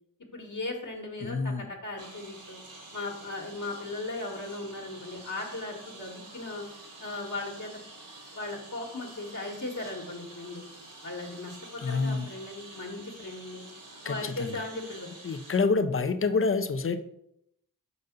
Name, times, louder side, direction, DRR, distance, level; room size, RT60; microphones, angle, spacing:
voice 1, 0.3-2.6 2.9-6.7 7.0-7.7 8.3-10.7 11.0-13.6 14.0-15.1, left 2 dB, 55° left, 1.5 m, -37 dB
voice 2, 1.2-1.7 11.8-12.3 14.0-14.6 15.2-17.0, left 4 dB, 35° left, 0.6 m, -27 dB
Engine, 2.0-15.6, right 2 dB, 60° right, 1.9 m, -48 dB
5.4 x 4.1 x 5.2 m
cardioid pair, 40°, 36 cm